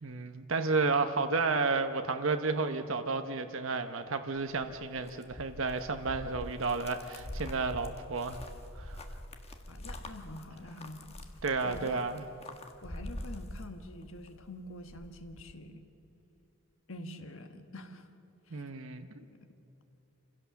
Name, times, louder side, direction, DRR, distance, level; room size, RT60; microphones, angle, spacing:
voice 1, 0.0-8.4 8.8-9.0 11.4-12.2 18.5-19.2, right 4 dB, 60° right, 7 dB, 0.9 m, -32 dB
sound 1, 4.4-14.3 14.6-15.5, left 1 dB, 30° left, 1.3 m, -45 dB
voice 2, 9.7-11.2 11.6-12.0 12.8-15.8 16.9-18.1 18.5-18.6, left 1 dB, 65° left, 7 dB, 1.5 m, -46 dB
27.0 x 16.5 x 7.0 m, 2.9 s
head